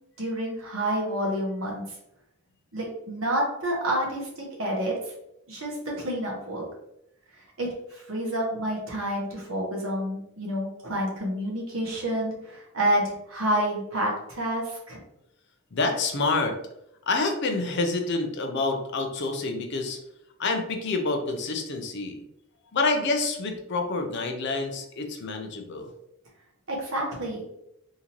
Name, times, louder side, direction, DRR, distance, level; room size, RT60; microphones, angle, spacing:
voice 1, 0.2-1.9 2.7-4.3 4.6-4.9 5.5-6.6 7.6-15.0 26.7-27.5, right 1 dB, 65° right, -2 dB, 1.3 m, -29 dB
voice 2, 15.7-16.6 17.1-20.0 20.4-22.2 22.7-25.9, left 3 dB, 55° left, 4 dB, 0.6 m, -27 dB
3.7 x 2.7 x 2.9 m, 0.79 s
head